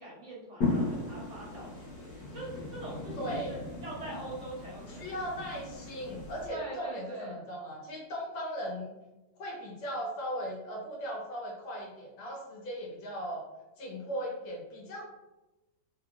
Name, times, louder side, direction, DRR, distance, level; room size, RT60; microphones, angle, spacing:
voice 1, 0.0-5.0 6.5-7.4, right 2 dB, 50° right, -7 dB, 1.0 m, -43 dB
sound 1, 0.6-6.5, left 3 dB, 60° left, 1.6 m, -37 dB
voice 2, 3.2-3.5 4.9-8.9 9.4-13.4 13.8-15.0, equal, 80° left, -2 dB, 1.7 m, -38 dB
3.7 x 3.3 x 2.4 m, 1.0 s
omnidirectional pair, 2.0 m